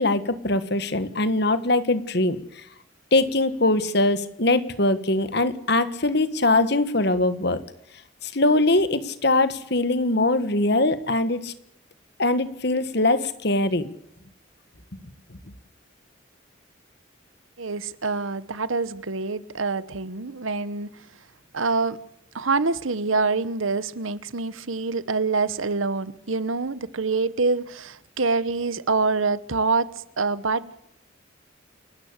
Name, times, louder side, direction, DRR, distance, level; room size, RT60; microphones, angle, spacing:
voice 1, 0.0-2.4 3.1-7.6 8.2-11.5 12.2-13.9, left 2 dB, 55° left, 1.6 m, -22 dB
voice 2, 17.6-20.9 21.5-22.0 22.3-30.8, right 4 dB, 85° right, 1.2 m, -26 dB
29.0 x 14.0 x 8.3 m
head